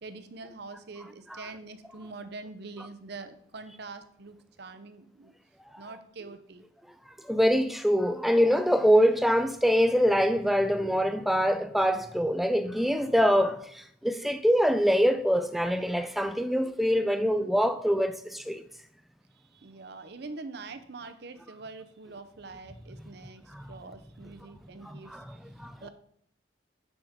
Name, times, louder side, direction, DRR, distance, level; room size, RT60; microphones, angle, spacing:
voice 1, 0.0-5.3 5.8-6.6 19.4-25.6 25.8-25.9, right 3 dB, 55° right, 0.6 m, -44 dB
voice 2, 7.2-18.6 23.5-23.7 24.8-25.3 25.6-25.8, equal, ahead, 0.3 m, -24 dB
9.0 x 5.1 x 3.6 m
head